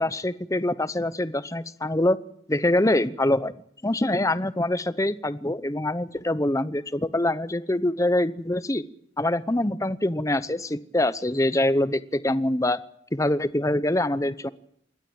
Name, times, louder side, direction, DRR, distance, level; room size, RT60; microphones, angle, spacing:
voice 1, 0.0-2.2 2.5-3.5 3.8-8.8 9.2-12.8 13.1-14.5, left 1 dB, 15° left, 14 dB, 0.8 m, -24 dB
27.5 x 12.5 x 8.8 m, 0.70 s
head